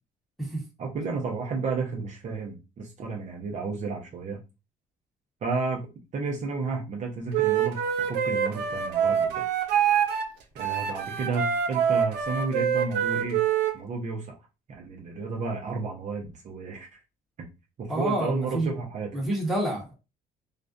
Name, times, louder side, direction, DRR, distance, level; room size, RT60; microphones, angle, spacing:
voice 1, 0.8-4.4 5.4-7.8 8.1-9.3 10.5-13.4 13.7-14.3 14.7-16.9 17.8-19.2, right 4 dB, 45° right, 0.6 m, -32 dB
Wind instrument woodwind instrument, 7.3-10.3 10.6-13.8, right 8 dB, 85° right, 0.5 m, -25 dB
voice 2, 17.9-18.7 19.1-19.9, right 1 dB, ahead, 1.0 m, -28 dB
2.4 x 2.1 x 2.5 m
cardioid pair, 110°, 17 cm